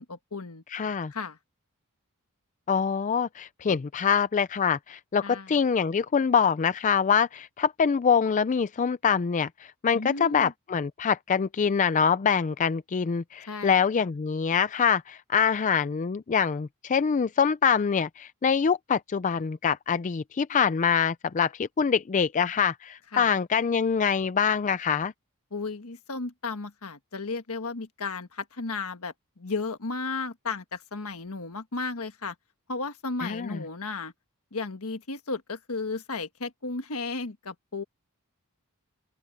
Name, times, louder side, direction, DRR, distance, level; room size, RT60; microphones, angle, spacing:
voice 1, 0.0-0.6 1.1-1.4 5.2-5.6 9.9-10.5 13.5-13.8 23.1-23.3 25.5-32.3 32.7-34.1 34.5-37.8, left 3 dB, 70° left, 1.5 m, -34 dB
voice 2, 0.7-1.1 2.7-25.1 33.2-33.6, left 6 dB, 35° left, 0.4 m, -25 dB
open air
head